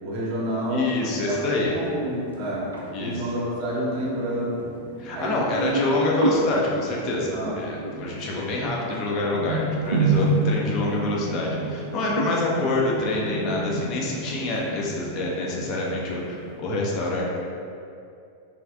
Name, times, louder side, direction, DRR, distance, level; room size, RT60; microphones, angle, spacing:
voice 1, 0.0-2.7 3.0-4.7 5.1-5.8 7.3-7.6, right 1 dB, 50° right, -6 dB, 0.8 m, -29 dB
sound 1, 0.6-16.6, right 2 dB, 70° right, 0.4 m, -31 dB
voice 2, 0.7-1.8 2.9-3.2 5.0-17.3, left 2 dB, 35° left, -3 dB, 0.4 m, -26 dB
3.4 x 2.4 x 2.3 m, 2.5 s
figure-of-eight pair, 90°, 0 cm